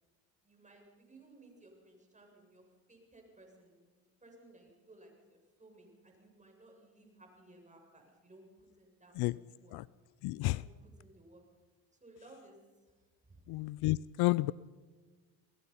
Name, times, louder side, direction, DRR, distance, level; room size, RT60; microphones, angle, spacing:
voice 1, 0.4-9.8 10.5-11.4 12.0-12.6 13.3-13.4, right 2 dB, 20° right, 2 dB, 7.3 m, -59 dB
voice 2, 10.2-10.6 13.5-14.5, left 20 dB, 70° left, 20 dB, 0.6 m, -31 dB
28.0 x 18.5 x 5.7 m, 1.3 s
supercardioid pair, 85°, 40 cm